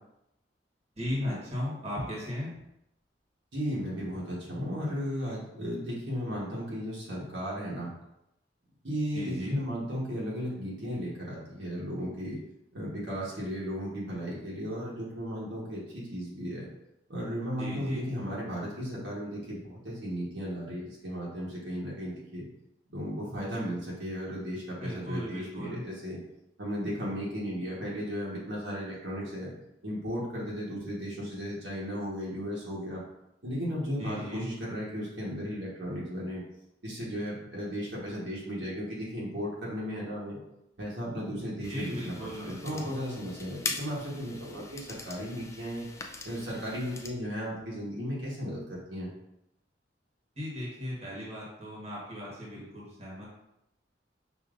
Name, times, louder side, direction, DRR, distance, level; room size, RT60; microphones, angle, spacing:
voice 1, 1.0-2.6 9.1-9.6 17.6-18.1 24.8-25.8 34.0-34.5 41.7-42.8 50.3-53.3, left 1 dB, 35° right, -6 dB, 1.3 m, -36 dB
voice 2, 3.5-7.9 8.8-12.4 12.7-16.7 17.1-22.5 22.9-26.2 26.6-29.5 29.8-33.0 33.4-36.4 36.8-40.4 40.8-45.9 46.2-49.1, equal, 70° right, -6 dB, 1.3 m, -35 dB
sound 1, 41.6-47.1, left 3 dB, 15° left, 0.3 m, -42 dB
5.2 x 2.7 x 2.5 m, 0.84 s
head